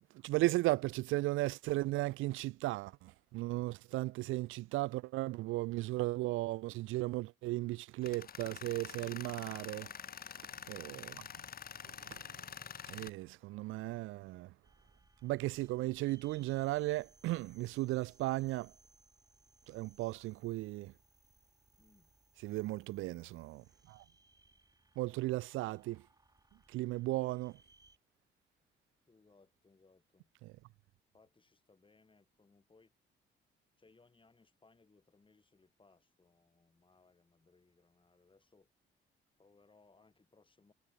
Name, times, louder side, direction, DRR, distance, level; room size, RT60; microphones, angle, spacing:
voice 1, 0.2-9.9 10.7-11.2 12.1-12.2 12.9-14.5 15.2-18.7 19.7-20.9 22.4-24.0 25.0-26.0 26.7-27.6, right 19 dB, 85° right, 0.4 m, -36 dB
Tools, 8.0-13.1, left 8 dB, 50° left, 1.3 m, -47 dB
sound 1, 14.6-28.0, right 3 dB, 20° right, 5.5 m, -67 dB
voice 2, 21.8-22.1 29.1-30.3 31.1-32.9 33.8-38.7 39.4-40.7, left 3 dB, 25° left, 7.0 m, -67 dB
cardioid pair, 90°, 20 cm